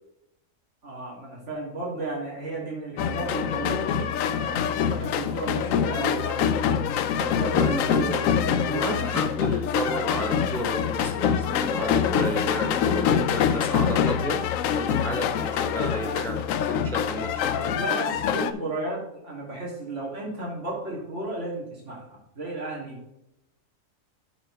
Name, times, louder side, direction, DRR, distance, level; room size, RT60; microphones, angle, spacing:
voice 1, 0.8-6.6 7.2-9.2 17.8-22.0 22.3-23.1, right 2 dB, 65° right, -5 dB, 3.5 m, -34 dB
sound 1, 3.0-18.5, left 8 dB, 85° left, 1.0 m, -25 dB
voice 2, 7.6-14.4 14.7-17.8, right 1 dB, ahead, 2 dB, 1.0 m, -32 dB
9.2 x 6.3 x 3.5 m, 0.86 s
omnidirectional pair, 1.3 m